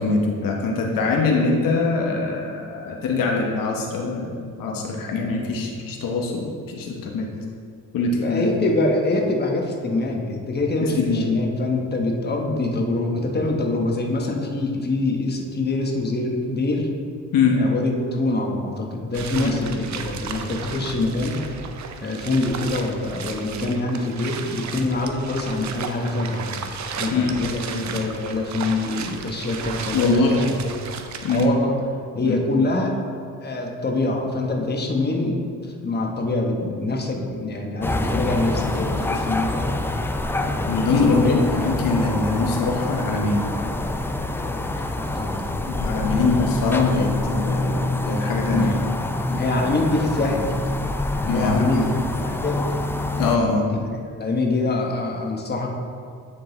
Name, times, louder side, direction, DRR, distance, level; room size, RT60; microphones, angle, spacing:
voice 1, 0.0-7.3 7.9-8.5 10.8-11.3 17.3-17.6 19.4-19.6 27.1-27.4 29.9-30.4 31.2-31.5 32.2-32.4 40.7-43.5 45.5-48.7 51.3-52.0 53.2-53.7, left 3 dB, 75° left, 0 dB, 1.0 m, -23 dB
voice 2, 8.2-16.9 17.6-21.4 22.0-26.6 27.0-30.6 31.3-31.7 32.1-33.1 33.4-39.7 40.3-41.4 44.9-45.4 46.1-46.2 48.4-48.8 49.3-50.6 51.2-51.9 52.2-52.8 54.1-55.7, left 2 dB, 30° left, 1 dB, 1.1 m, -25 dB
sound 1, 19.1-31.5, right 6 dB, 55° right, 0.6 m, -34 dB
sound 2, 37.8-53.4, left 2 dB, 5° left, 0.3 m, -26 dB
9.5 x 3.8 x 3.9 m, 2.3 s
cardioid pair, 85°, 34 cm